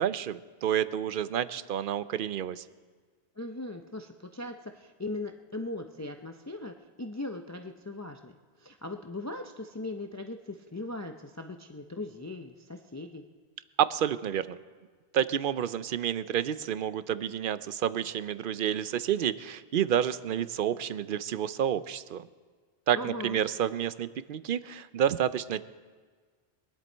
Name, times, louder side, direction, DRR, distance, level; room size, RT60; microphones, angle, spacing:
voice 1, 0.0-2.6 13.8-14.6 15.1-22.3 22.9-25.6, right 9 dB, 60° right, 15 dB, 0.7 m, -29 dB
voice 2, 3.4-13.2 22.9-23.4, left 2 dB, 20° left, 4 dB, 0.5 m, -39 dB
22.5 x 10.5 x 4.4 m, 1.5 s
omnidirectional pair, 1.1 m